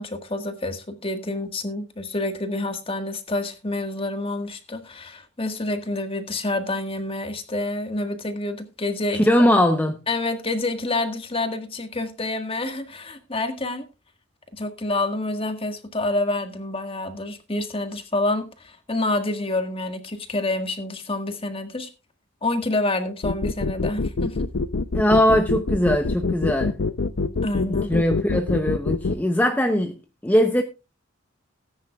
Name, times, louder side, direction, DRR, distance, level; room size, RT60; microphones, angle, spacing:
voice 1, 0.0-9.3 10.1-13.8 14.5-21.9 22.4-24.4 27.4-28.0, left 2 dB, 25° left, 1.6 m, -28 dB
voice 2, 9.1-10.0 24.9-26.7 27.6-29.9 30.2-30.6, equal, 10° left, 0.7 m, -20 dB
sound 1, 23.2-29.2, left 3 dB, 65° left, 0.6 m, -24 dB
18.5 x 9.7 x 2.4 m
head